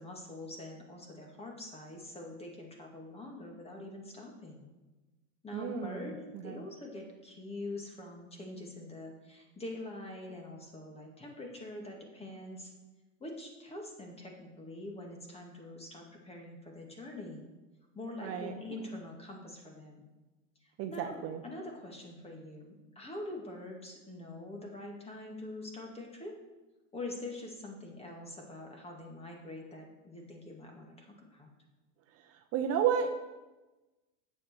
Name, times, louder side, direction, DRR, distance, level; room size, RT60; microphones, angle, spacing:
voice 1, 0.0-4.6 5.4-6.2 6.4-12.7 13.2-17.4 17.9-20.0 20.6-26.3 26.9-31.5, left 2 dB, 15° left, 1 dB, 2.2 m, -44 dB
voice 2, 5.5-6.1 6.4-6.6 18.2-18.5 20.8-21.4 32.1-33.1, right 8 dB, 40° right, 5 dB, 0.9 m, -32 dB
10.0 x 7.6 x 6.7 m, 1.1 s
supercardioid pair, 130°, 39 cm